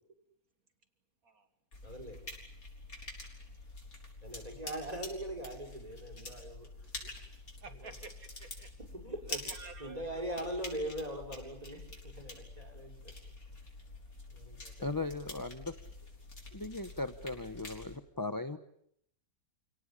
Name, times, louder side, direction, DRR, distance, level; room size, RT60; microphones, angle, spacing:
sound 1, 1.7-18.0, left 2 dB, 65° left, 6.0 m, -47 dB
voice 1, 1.8-2.2 4.2-6.7 7.8-7.9 9.0-9.4 9.8-13.1 14.3-14.9, right 1 dB, 25° right, 3 dB, 5.3 m, -41 dB
voice 2, 7.6-8.7 9.3-10.2, right 4 dB, 70° right, 9 dB, 2.1 m, -50 dB
voice 3, 14.8-15.7 16.5-18.6, left 2 dB, 15° left, 10 dB, 0.9 m, -37 dB
29.5 x 18.0 x 10.0 m, 0.73 s
omnidirectional pair, 1.6 m